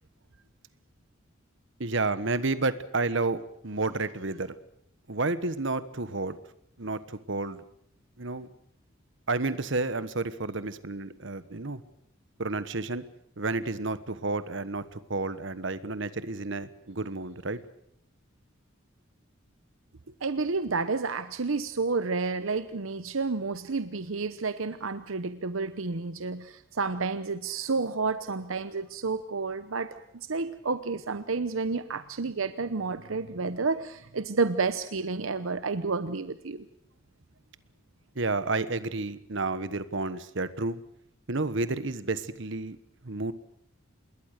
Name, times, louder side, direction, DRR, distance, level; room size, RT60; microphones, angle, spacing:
voice 1, 1.8-4.5 5.1-6.4 6.8-7.6 8.2-8.5 9.3-11.8 12.4-13.0 13.4-17.6 38.1-40.8 41.3-42.8 43.0-43.3, right 3 dB, 65° right, 14 dB, 1.3 m, -31 dB
voice 2, 20.2-36.6, right 4 dB, 80° right, 12 dB, 0.9 m, -30 dB
27.5 x 21.0 x 6.7 m, 0.72 s
head